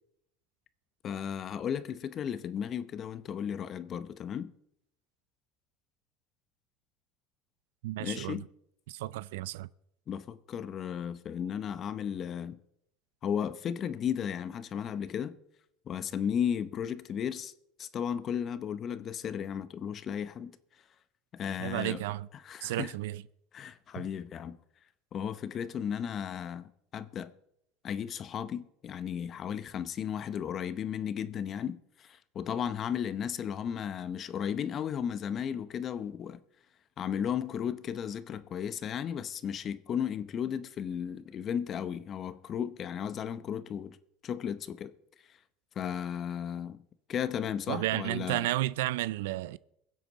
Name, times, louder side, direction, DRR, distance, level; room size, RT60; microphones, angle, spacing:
voice 1, 1.0-4.5 8.0-8.5 10.1-12.6 13.2-15.4 15.9-17.5 17.8-20.5 21.3-22.0 22.4-22.9 23.5-24.6 25.1-27.3 27.8-36.4 37.0-44.0 44.2-44.9 45.8-46.8 47.1-48.5, left 8 dB, 40° left, 0.8 m, -35 dB
voice 2, 7.8-8.4 8.9-9.7 21.6-22.3 22.6-23.2 24.0-24.1 47.7-49.6, right 16 dB, 90° right, 0.4 m, -32 dB
22.5 x 7.9 x 4.1 m
supercardioid pair, 115°, 0 cm